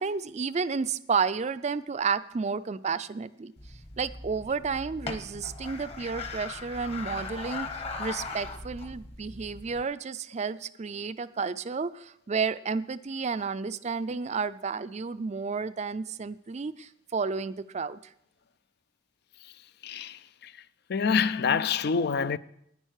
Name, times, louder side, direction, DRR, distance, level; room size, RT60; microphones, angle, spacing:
voice 1, 0.0-3.5 4.0-18.0, right 5 dB, 35° right, 0.4 m, -31 dB
sound 1, 3.6-9.8, left 3 dB, 30° left, 1.1 m, -39 dB
voice 2, 19.8-20.6 20.9-22.4, left 6 dB, 55° left, 0.4 m, -27 dB
11.0 x 9.9 x 6.5 m
head